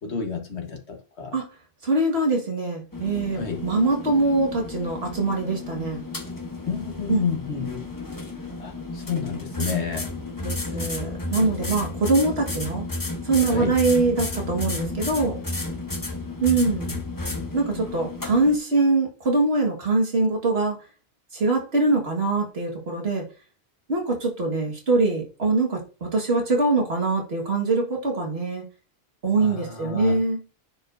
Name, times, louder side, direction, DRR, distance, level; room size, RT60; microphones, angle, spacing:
voice 1, 0.0-1.4 3.3-3.6 6.7-7.8 8.6-10.1 10.9-11.0 13.5-13.8 16.9-17.0 29.4-30.2, left 6 dB, 90° left, 1.6 m, -30 dB
voice 2, 1.8-6.0 7.1-7.2 10.4-12.8 13.2-15.4 16.4-16.9 17.5-20.8 21.3-23.2 23.9-28.6 29.2-30.4, right 3 dB, 70° right, 1.9 m, -23 dB
sound 1, 2.9-18.6, left 2 dB, 20° left, 0.9 m, -32 dB
9.6 x 4.9 x 2.6 m
omnidirectional pair, 1.1 m